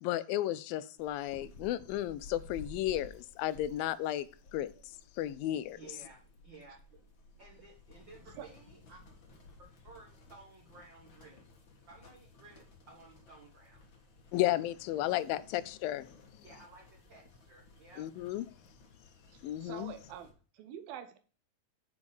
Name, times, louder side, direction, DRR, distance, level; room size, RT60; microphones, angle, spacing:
voice 1, 0.0-4.3 4.5-4.7 5.2-5.8 14.3-16.1 18.0-18.5 19.4-19.9, left 13 dB, 85° left, 2.3 m, -33 dB
sound 1, 1.0-20.3, left 2 dB, 50° left, 1.5 m, -56 dB
voice 2, 5.8-6.8 7.4-9.0 9.6-11.4 11.9-13.8 16.4-18.0, right 3 dB, 50° right, 1.4 m, -55 dB
voice 3, 19.3-21.2, right 10 dB, 85° right, 2.7 m, -46 dB
7.3 x 4.8 x 6.9 m
omnidirectional pair, 4.1 m